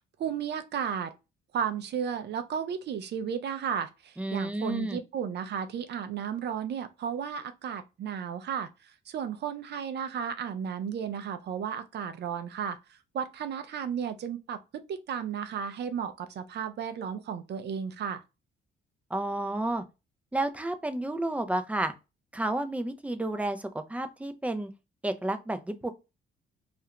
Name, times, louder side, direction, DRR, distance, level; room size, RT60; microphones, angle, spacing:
voice 1, 0.2-1.1 1.5-8.7 9.1-12.8 13.1-14.6 14.9-18.2, right 7 dB, 60° right, 0.5 m, -33 dB
voice 2, 4.2-5.0 19.1-19.8 20.3-21.9 22.3-24.7 25.0-25.9, right 1 dB, 5° right, 0.4 m, -31 dB
2.5 x 2.1 x 2.8 m
cardioid pair, 90°, 20 cm